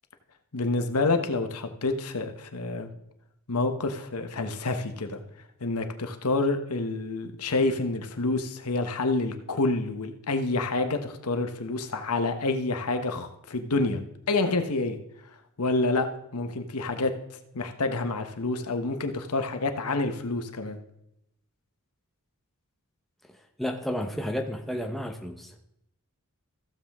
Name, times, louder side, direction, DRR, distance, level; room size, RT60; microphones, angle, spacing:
voice 1, 0.5-2.9 3.5-5.2 5.6-14.0 14.3-15.0 15.6-17.1 17.5-20.8, left 3 dB, 85° left, 7 dB, 1.1 m, -28 dB
voice 2, 23.6-25.5, equal, ahead, 3 dB, 0.9 m, -31 dB
15.5 x 7.4 x 3.6 m, 0.79 s
head